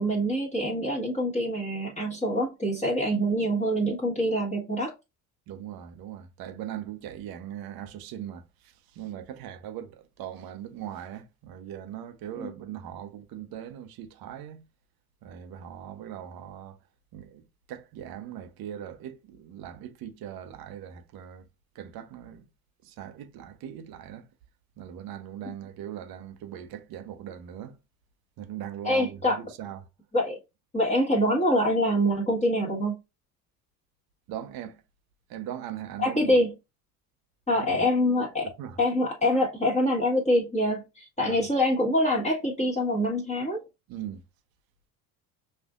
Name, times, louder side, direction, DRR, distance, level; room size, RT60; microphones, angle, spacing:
voice 1, 0.0-4.9 12.4-12.5 28.8-29.4 30.1-30.4 30.7-33.0 36.0-36.5 37.5-38.5 38.8-43.6, equal, 15° left, 1.4 m, -25 dB
voice 2, 5.5-14.7 15.2-16.8 17.1-21.4 21.7-22.4 22.8-24.3 24.8-27.8 28.4-29.9 34.3-34.8 35.3-36.4 37.5-37.8 38.4-38.8 41.2-41.4 43.9-44.2, right 10 dB, 50° right, 0.9 m, -40 dB
6.3 x 2.6 x 2.4 m
hypercardioid pair, 65°, 46 cm